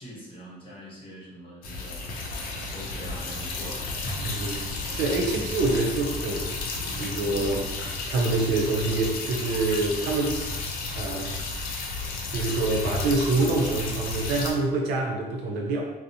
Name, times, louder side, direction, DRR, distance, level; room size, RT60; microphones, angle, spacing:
voice 1, 0.0-4.3, equal, 30° left, -5 dB, 1.1 m, -44 dB
sound 1, 1.6-14.5, left 3 dB, 60° left, 0.5 m, -32 dB
voice 2, 4.2-6.7 7.0-7.7 8.1-10.4 11.0-11.3 12.3-15.9, right 3 dB, 90° right, 0 dB, 0.6 m, -26 dB
2.6 x 2.0 x 2.8 m, 1.1 s
cardioid pair, 110°, 17 cm